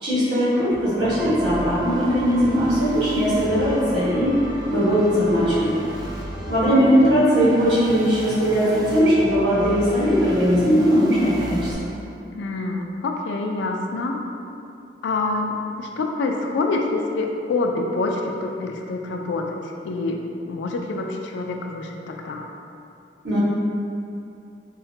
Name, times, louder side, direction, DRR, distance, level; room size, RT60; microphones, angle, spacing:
voice 1, 0.0-4.4 4.7-5.7 6.5-12.0 23.2-23.4, equal, 80° right, -11 dB, 1.4 m, -19 dB
sound 1, 0.7-11.7, right 1 dB, 25° right, 0.4 m, -34 dB
voice 2, 12.3-14.2 15.0-22.5, left 3 dB, 85° left, 3 dB, 0.3 m, -26 dB
3.8 x 2.1 x 2.7 m, 2.6 s
head